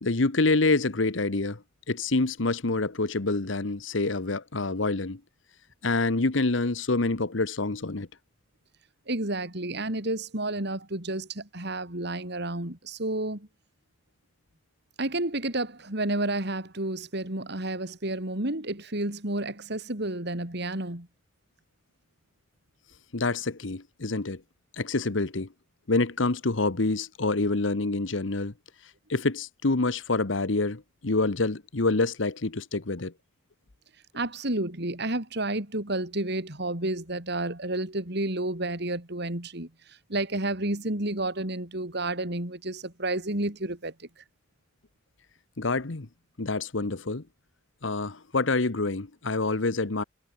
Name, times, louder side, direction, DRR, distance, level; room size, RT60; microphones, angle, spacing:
voice 1, 0.0-1.6 1.9-5.2 5.8-8.1 23.1-24.4 24.7-25.5 25.9-28.5 29.1-33.1 45.6-46.1 46.4-47.2 47.8-50.0, left 3 dB, 80° left, 1.3 m, -27 dB
voice 2, 9.1-13.5 15.0-21.1 34.1-44.2, right 2 dB, 60° right, 3.9 m, -31 dB
head